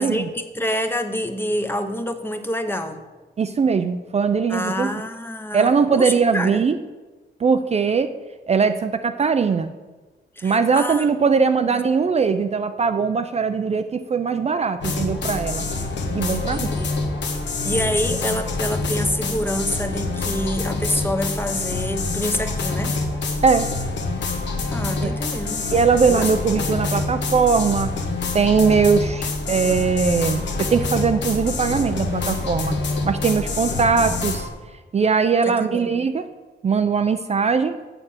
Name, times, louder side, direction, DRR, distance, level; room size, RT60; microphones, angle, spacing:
voice 1, 0.0-3.0 4.5-6.6 10.4-11.1 11.7-11.8 16.3-17.0 17.6-23.0 24.7-25.6 26.1-26.3 35.5-36.1, equal, 10° left, 7 dB, 0.8 m, -27 dB
voice 2, 3.4-4.9 5.5-6.8 7.4-8.1 8.5-9.7 10.4-15.7 16.1-16.7 23.4-23.7 25.0-25.1 25.7-27.9 28.3-32.8 33.0-34.5 34.9-36.3 36.6-37.8, right 5 dB, 35° right, 8 dB, 0.5 m, -20 dB
sound 1, 14.8-34.5, left 3 dB, 80° left, 1.4 m, -26 dB
7.9 x 6.7 x 7.3 m, 1.2 s
cardioid pair, 115°, 19 cm